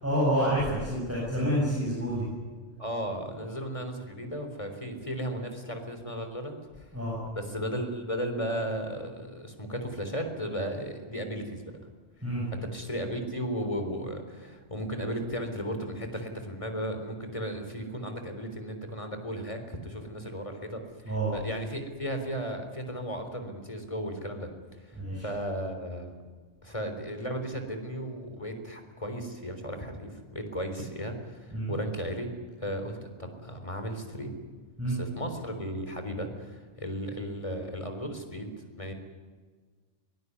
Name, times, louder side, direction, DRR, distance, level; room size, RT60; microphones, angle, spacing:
voice 1, 0.0-2.3 6.9-7.2 12.2-12.5 21.1-21.3 24.9-25.3 31.5-31.8 34.8-35.0, right 1 dB, 10° right, -5 dB, 7.4 m, -28 dB
voice 2, 2.8-6.9 7.4-11.6 12.5-24.5 24.8-26.1 26.6-32.3 32.6-34.4 34.9-38.5 38.8-38.9, equal, 25° left, 6 dB, 3.8 m, -35 dB
23.0 x 19.5 x 9.7 m, 1.5 s
omnidirectional pair, 1.3 m